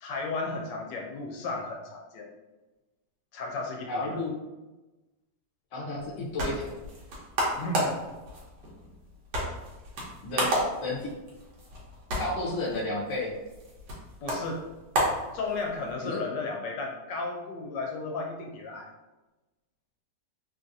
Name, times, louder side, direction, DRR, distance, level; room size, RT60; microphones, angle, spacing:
voice 1, 0.0-2.3 3.3-4.2 7.6-8.0 14.2-14.6 15.3-18.9, left 3 dB, 80° left, 1 dB, 1.2 m, -34 dB
voice 2, 3.9-4.3 5.7-6.8 10.2-11.1 12.2-13.3 16.0-16.2, left 2 dB, 55° left, -3 dB, 0.9 m, -32 dB
sound 1, 6.0-15.9, right 1 dB, 80° right, 1.5 m, -33 dB
3.4 x 2.4 x 2.6 m, 1.1 s
omnidirectional pair, 1.9 m